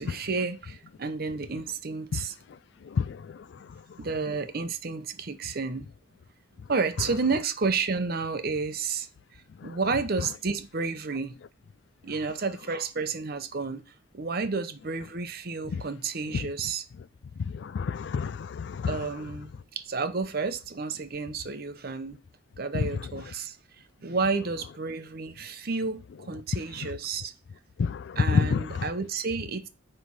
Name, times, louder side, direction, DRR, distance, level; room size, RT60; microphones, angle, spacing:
voice 1, 0.0-2.4 4.0-5.9 6.7-9.1 9.6-11.3 12.0-13.8 14.1-16.9 18.9-22.2 22.6-23.6 24.0-27.3 28.2-29.7, right 4 dB, 50° right, 0.8 m, -31 dB
voice 2, 17.6-18.9 22.7-22.8 27.8-28.6, left 5 dB, 60° left, 0.3 m, -27 dB
9.5 x 3.3 x 6.1 m
head